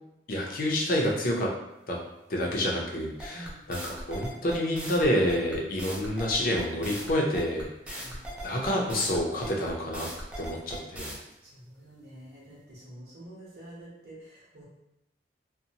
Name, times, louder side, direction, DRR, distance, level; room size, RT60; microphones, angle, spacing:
voice 1, 0.3-1.5 1.9-2.0 2.3-8.1 8.4-10.1 10.4-11.2, left 1 dB, 55° left, -1 dB, 0.5 m, -28 dB
sound 1, 3.2-11.2, right 1 dB, 5° right, 0.4 m, -39 dB
voice 2, 3.3-3.6 7.9-8.3 11.4-14.6, right 1 dB, 60° right, -8 dB, 0.9 m, -48 dB
2.8 x 2.1 x 2.7 m, 0.93 s
head